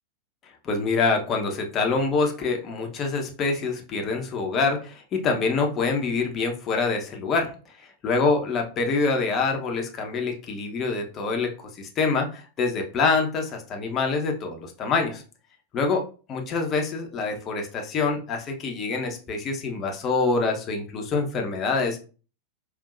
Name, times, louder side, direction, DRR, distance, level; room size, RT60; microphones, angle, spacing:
voice 1, 0.6-7.5 8.0-15.2 15.7-16.0 16.3-22.0, left 4 dB, 30° left, 2 dB, 1.0 m, -25 dB
5.3 x 2.7 x 2.5 m, 0.37 s
figure-of-eight pair, 90°, 0 cm